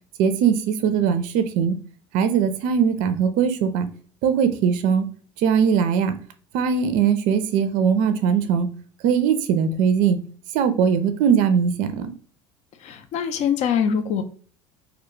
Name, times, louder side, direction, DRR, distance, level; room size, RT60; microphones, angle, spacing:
voice 1, 0.2-1.7 2.1-3.9 4.2-5.1 5.4-6.2 6.5-8.7 9.0-10.2 10.5-12.1, right 7 dB, 60° right, 0.4 m, -20 dB
voice 2, 12.8-14.2, left 7 dB, 50° left, 0.5 m, -23 dB
2.2 x 2.1 x 3.0 m
hypercardioid pair, 90°, 15 cm